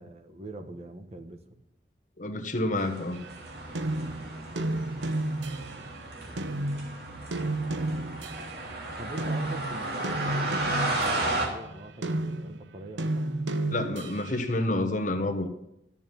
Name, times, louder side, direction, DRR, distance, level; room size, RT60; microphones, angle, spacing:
voice 1, 0.0-1.4 4.5-5.1 5.6-5.8 6.2-6.6 8.9-13.4, right 1 dB, 35° right, 1.3 m, -44 dB
voice 2, 2.2-3.2 13.7-15.5, left 1 dB, 45° left, 1.3 m, -28 dB
sound 1, 2.8-11.5, right 2 dB, 60° right, 3.1 m, -34 dB
sound 2, 3.1-6.0 6.4-8.7 9.2-14.4, right 1 dB, 80° right, 0.9 m, -32 dB
13.5 x 7.2 x 9.2 m
head